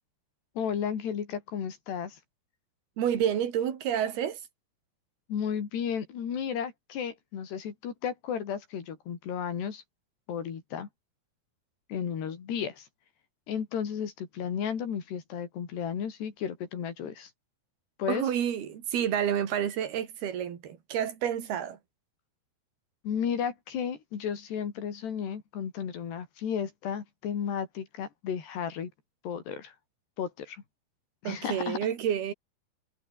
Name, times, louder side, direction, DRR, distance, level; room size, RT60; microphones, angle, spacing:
voice 1, 0.6-2.2 5.3-9.8 10.3-10.9 11.9-12.9 13.5-17.3 18.0-18.2 23.0-28.9 29.2-29.8 30.2-30.6 31.2-31.8, left 8 dB, 75° left, 5.6 m, -33 dB
voice 2, 3.0-4.4 18.1-21.8 31.2-32.3, right 9 dB, 70° right, 4.7 m, -29 dB
omnidirectional pair, 4.8 m